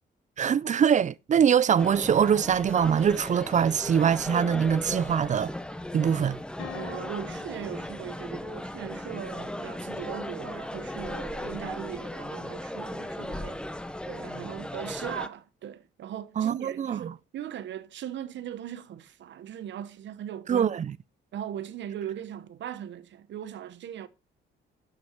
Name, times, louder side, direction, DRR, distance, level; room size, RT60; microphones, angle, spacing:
voice 1, 0.4-5.5 5.9-6.4 16.4-17.1 20.5-20.9, right 8 dB, 40° right, 0.4 m, -23 dB
sound 1, 1.8-15.3, left 1 dB, 5° left, 0.7 m, -37 dB
sound 2, 4.3-5.9 6.6-8.5, left 9 dB, 85° left, 1.4 m, -47 dB
voice 2, 6.7-13.6 14.1-20.8 21.3-24.1, right 10 dB, 65° right, 0.9 m, -39 dB
12.0 x 5.4 x 4.5 m
cardioid pair, 90°, 20 cm